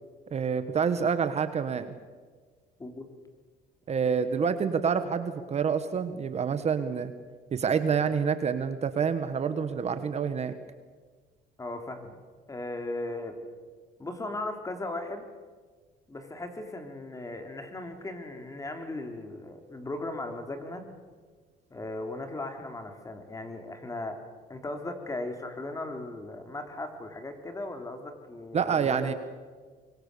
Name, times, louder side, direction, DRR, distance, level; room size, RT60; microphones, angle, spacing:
voice 1, 0.3-1.9 3.9-7.1 7.5-10.5 28.5-29.1, right 6 dB, 40° right, 11 dB, 1.5 m, -27 dB
voice 2, 11.6-12.1 12.5-13.3 14.0-15.3 16.1-20.8 21.7-24.2 24.5-29.1, left 2 dB, 20° left, 6 dB, 3.5 m, -37 dB
25.0 x 23.0 x 6.9 m, 1.5 s
cardioid pair, 110°, 17 cm